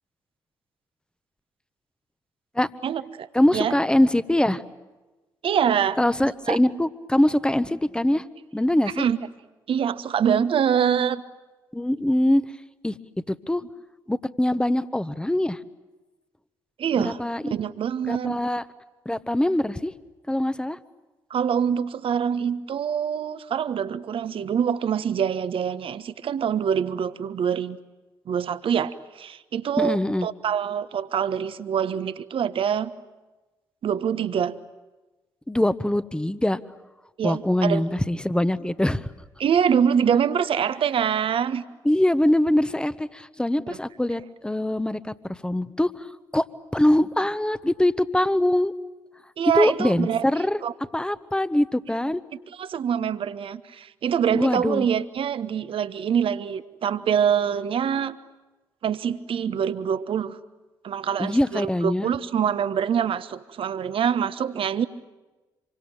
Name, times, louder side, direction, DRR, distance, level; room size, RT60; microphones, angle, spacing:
voice 1, 2.8-3.3 3.5-3.7 5.4-6.0 6.5-6.6 9.0-9.2 9.7-11.2 16.8-17.2 17.5-18.4 21.3-27.8 28.3-32.9 33.8-34.5 37.2-37.8 39.4-41.6 43.7-43.8 49.4-50.2 50.6-50.7 52.6-58.2 58.8-60.4 60.8-64.9, right 8 dB, 55° right, 13 dB, 1.2 m, -25 dB
voice 2, 3.3-4.6 6.0-8.2 8.5-9.0 11.7-12.4 12.8-13.0 13.3-13.6 14.1-15.6 17.0-17.5 18.1-18.6 19.0-19.9 20.3-20.8 29.8-30.3 35.5-36.6 37.2-39.1 41.8-46.1 46.3-46.5 46.7-48.7 49.5-50.6 50.9-52.2 54.3-54.9 61.2-62.1, left 1 dB, 10° left, 13 dB, 1.3 m, -23 dB
27.0 x 24.0 x 9.0 m, 1.1 s
figure-of-eight pair, 40°, 11 cm